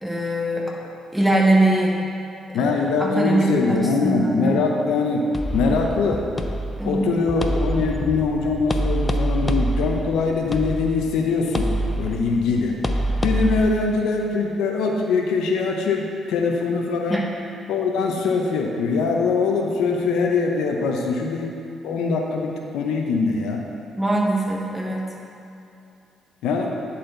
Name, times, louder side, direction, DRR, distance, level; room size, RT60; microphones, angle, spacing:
voice 1, 0.0-0.7 1.1-2.0 2.5-2.7 3.0-4.6 6.8-7.0 17.1-17.2 24.0-25.1, right 1 dB, 10° right, -4 dB, 1.3 m, -22 dB
voice 2, 2.5-6.3 6.8-11.7 12.0-12.8 13.2-17.2 17.7-21.5 21.8-23.6 26.4-26.7, left 4 dB, 85° left, 1 dB, 0.7 m, -22 dB
sound 1, 5.3-13.6, equal, 20° left, 0.5 m, -26 dB
9.8 x 4.2 x 3.8 m, 2.6 s
cardioid pair, 90°, 0 cm